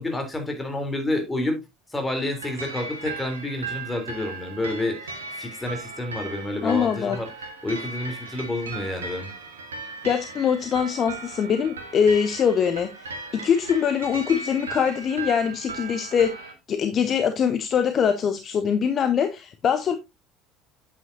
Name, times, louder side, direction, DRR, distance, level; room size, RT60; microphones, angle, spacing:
voice 1, 0.0-1.6 1.9-7.3 7.6-9.3, left 1 dB, 15° left, 3.3 m, -29 dB
sound 1, 2.1-16.5, right 3 dB, 75° right, 1.5 m, -37 dB
voice 2, 6.6-7.2 10.0-20.0, left 7 dB, 40° left, 0.8 m, -23 dB
8.9 x 8.5 x 2.7 m
figure-of-eight pair, 60°, 0 cm